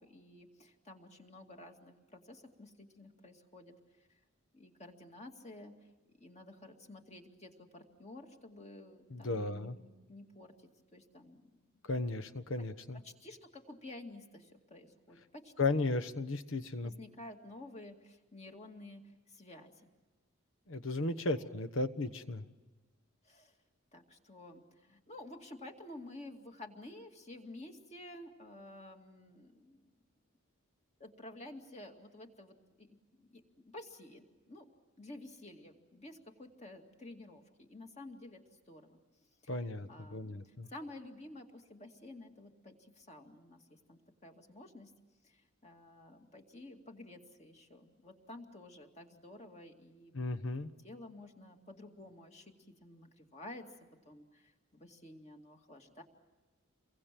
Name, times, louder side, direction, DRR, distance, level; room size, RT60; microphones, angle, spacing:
voice 1, 0.0-4.2 4.5-5.9 6.2-11.6 12.6-12.7 12.9-15.8 16.8-19.9 21.3-21.5 23.2-23.5 23.9-29.9 31.0-34.7 35.0-44.9 45.2-53.7 54.0-56.0, left 1 dB, 30° left, 3 dB, 2.3 m, -52 dB
voice 2, 9.1-9.7 11.8-13.0 15.6-16.9 20.7-22.4 39.5-40.7 50.1-50.7, left 2 dB, 65° left, 11 dB, 1.2 m, -35 dB
28.5 x 23.0 x 7.6 m, 1.2 s
head